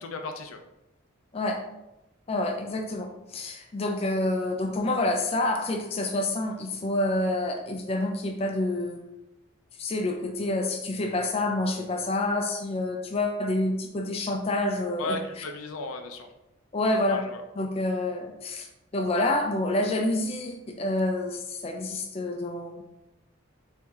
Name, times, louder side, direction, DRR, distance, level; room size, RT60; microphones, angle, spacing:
voice 1, 0.0-0.6 15.0-16.3 17.0-17.4, left 2 dB, 85° left, 5 dB, 0.5 m, -35 dB
voice 2, 2.3-9.0 9.8-15.2 16.7-17.3 17.6-22.8, left 2 dB, 30° left, 3 dB, 0.4 m, -28 dB
4.6 x 2.7 x 3.5 m, 0.93 s
head